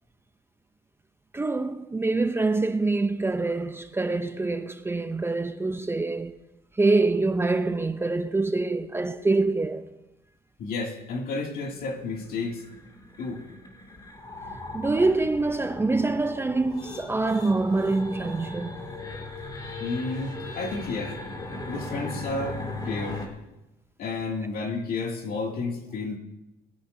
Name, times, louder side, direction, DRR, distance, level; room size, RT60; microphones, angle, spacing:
voice 1, 1.3-6.4 6.8-9.9 14.7-18.8, right 3 dB, 15° right, 0.6 m, -25 dB
voice 2, 10.6-12.6 13.2-13.4 19.8-21.2 21.7-23.3 24.0-26.2, left 3 dB, 60° left, 2.5 m, -31 dB
sound 1, 11.7-23.3, left 2 dB, 25° left, 2.4 m, -38 dB
20.5 x 14.5 x 2.7 m
cardioid pair, 110°, 17 cm